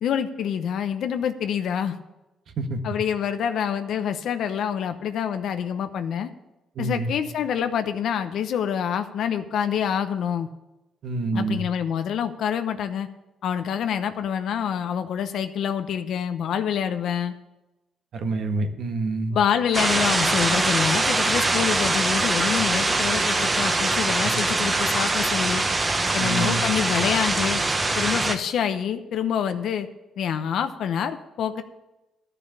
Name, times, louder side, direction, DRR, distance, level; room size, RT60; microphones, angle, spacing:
voice 1, 0.0-2.0 2.8-6.3 6.8-10.5 11.3-13.1 13.4-17.3 19.3-25.6 26.1-27.6 27.9-29.9 30.2-31.6, left 8 dB, 75° left, 8 dB, 0.8 m, -26 dB
voice 2, 6.7-7.1 11.0-11.6 18.1-19.4 24.2-24.3 26.2-26.6, right 3 dB, 65° right, 5 dB, 1.5 m, -27 dB
sound 1, 19.7-28.3, right 2 dB, 25° right, 1.2 m, -23 dB
12.0 x 6.9 x 7.0 m, 0.98 s
cardioid pair, 90°, 0 cm